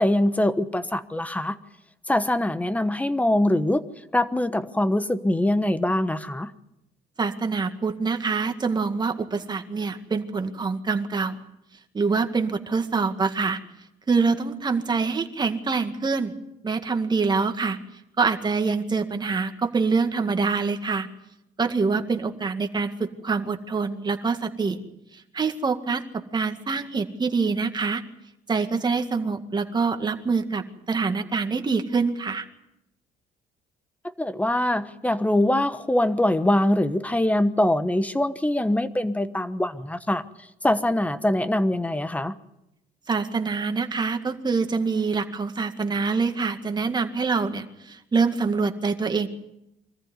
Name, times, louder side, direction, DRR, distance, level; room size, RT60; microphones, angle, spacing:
voice 1, 0.0-1.6 2.1-3.8 4.1-6.5 34.0-40.2 40.6-42.4, left 1 dB, 10° left, 12 dB, 1.2 m, -23 dB
voice 2, 7.2-11.4 11.9-13.6 14.1-16.3 16.6-17.8 18.2-21.1 21.6-24.8 25.3-28.0 28.5-32.5 43.1-49.3, right 4 dB, 25° right, 6 dB, 2.0 m, -25 dB
24.5 x 14.5 x 9.6 m, 0.87 s
cardioid pair, 110°, 17 cm